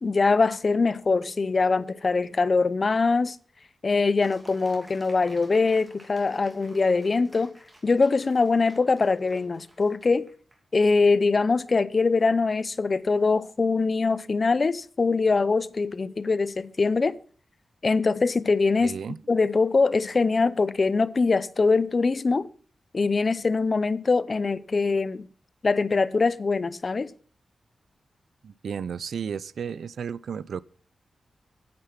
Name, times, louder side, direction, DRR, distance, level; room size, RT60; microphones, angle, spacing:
voice 1, 0.0-3.4 3.8-7.5 7.8-10.3 10.7-17.2 17.8-18.9 19.3-22.5 22.9-25.3 25.6-27.1, left 4 dB, 40° left, 0.5 m, -23 dB
sound 1, 4.2-10.6, right 1 dB, 20° right, 2.7 m, -54 dB
voice 2, 18.8-19.2 28.4-30.6, right 7 dB, 80° right, 0.4 m, -33 dB
9.6 x 8.8 x 5.7 m
wide cardioid pair, 135°, 0 cm